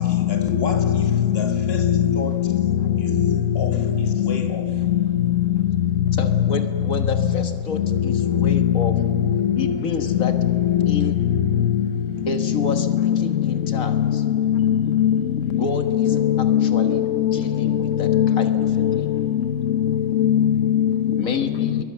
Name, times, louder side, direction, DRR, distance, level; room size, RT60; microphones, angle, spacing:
voice 1, 0.0-2.6 3.0-4.8, left 5 dB, 50° left, 1.8 m, -33 dB
voice 2, 6.1-9.0 9.6-10.3 10.9-11.2 12.3-14.2 15.4-17.0 17.3-19.1 21.1-21.8, left 5 dB, 90° left, 1.9 m, -30 dB
voice 3, 14.5-15.2 16.0-16.2 16.4-16.9 18.1-18.6 20.2-20.9, left 10 dB, 70° left, 1.1 m, -19 dB
28.0 x 22.0 x 6.8 m
omnidirectional pair, 1.4 m